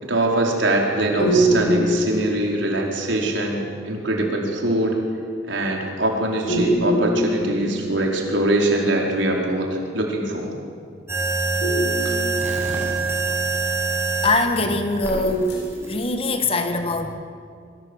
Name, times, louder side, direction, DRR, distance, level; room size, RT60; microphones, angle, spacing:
voice 1, 0.0-5.0 5.5-10.5 12.0-12.2, right 1 dB, 80° right, 0 dB, 4.8 m, -23 dB
sound 1, 1.2-2.9 6.5-8.3 11.6-13.1 15.1-16.3, equal, 60° left, 7.6 m, -24 dB
sound 2, 11.1-14.3 15.0-16.1, right 4 dB, 15° right, 6.4 m, -25 dB
voice 2, 14.2-15.6 15.9-17.1, left 2 dB, 30° left, 6 dB, 1.9 m, -22 dB
28.0 x 23.5 x 8.4 m, 2.3 s
head